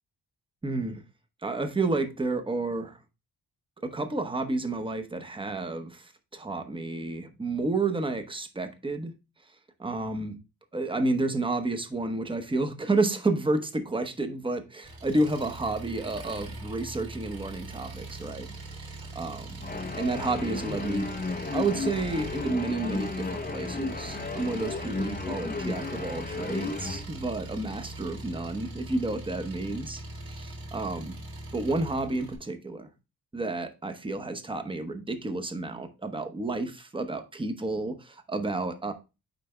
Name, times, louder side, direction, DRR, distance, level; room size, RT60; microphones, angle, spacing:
voice 1, 0.6-1.0 1.4-3.0 3.8-9.1 9.8-10.4 10.7-19.6 19.9-21.1 21.5-30.0 30.3-31.1 31.5-32.9 33.3-38.9, right 2 dB, 15° right, 0.8 m, -30 dB
Engine, 14.8-32.4, right 2 dB, 65° right, 2.3 m, -41 dB
sound 1, 19.6-27.0, left 3 dB, 25° left, 0.6 m, -34 dB
9.1 x 3.4 x 3.3 m
wide cardioid pair, 135°, 39 cm